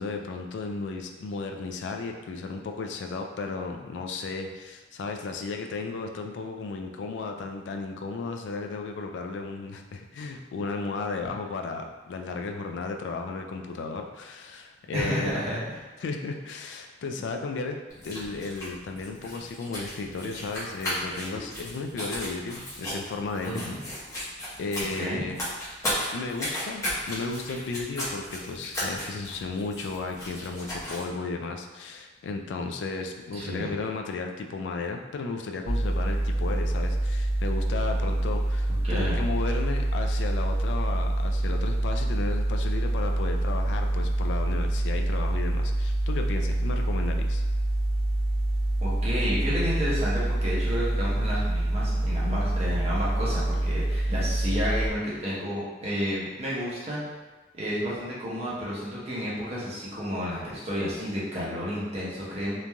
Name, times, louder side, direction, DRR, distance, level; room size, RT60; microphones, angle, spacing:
voice 1, 0.0-15.4 16.0-17.8 18.0-23.6 24.6-25.4 26.1-47.4, left 3 dB, 75° left, 4 dB, 0.3 m, -34 dB
voice 2, 14.9-15.7 23.5-23.8 25.0-25.2 33.3-33.7 38.8-39.2 48.8-57.0 57.5-62.6, equal, 35° right, -7 dB, 0.8 m, -31 dB
sound 1, 17.9-31.1, equal, 20° left, 0.8 m, -35 dB
sound 2, 35.7-54.9, right 1 dB, 35° left, 1.1 m, -26 dB
3.1 x 2.5 x 2.2 m, 1.2 s
head